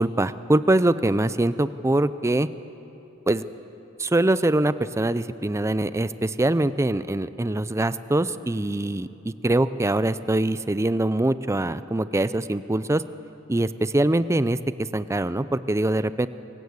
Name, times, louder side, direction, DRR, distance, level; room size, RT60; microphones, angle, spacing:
voice 1, 0.0-2.5 3.3-3.4 4.0-13.0 13.5-16.3, right 1 dB, 15° right, 14 dB, 0.5 m, -23 dB
24.5 x 16.0 x 8.2 m, 2.9 s
head